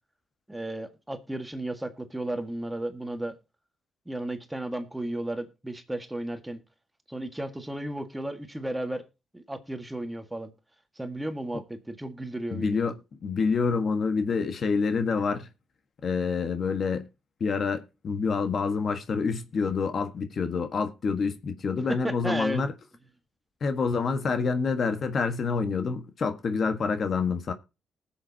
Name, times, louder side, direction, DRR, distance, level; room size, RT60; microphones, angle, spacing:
voice 1, 0.5-3.4 4.1-6.6 7.1-9.0 9.3-10.5 11.0-12.9 21.9-22.6, right 1 dB, 10° right, 1.7 m, -34 dB
voice 2, 12.5-12.9 13.2-15.5 16.0-17.1 17.4-22.7 23.6-27.5, left 5 dB, 50° left, 1.4 m, -27 dB
19.5 x 7.3 x 2.8 m
cardioid pair, 90°, 0 cm